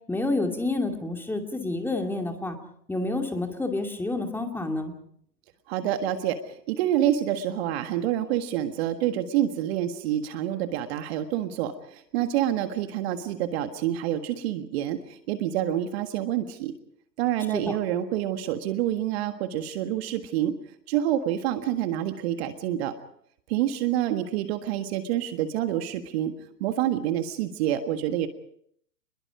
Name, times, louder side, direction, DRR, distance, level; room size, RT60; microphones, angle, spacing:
voice 1, 0.1-2.6 2.9-4.9 17.5-17.7, left 2 dB, 5° left, 4 dB, 2.5 m, -29 dB
voice 2, 5.7-16.7 17.2-20.5 20.9-22.9 23.5-26.3 26.6-28.3, right 11 dB, 40° right, 8 dB, 1.7 m, -27 dB
29.0 x 21.5 x 4.9 m, 0.67 s
figure-of-eight pair, 120°, 50 cm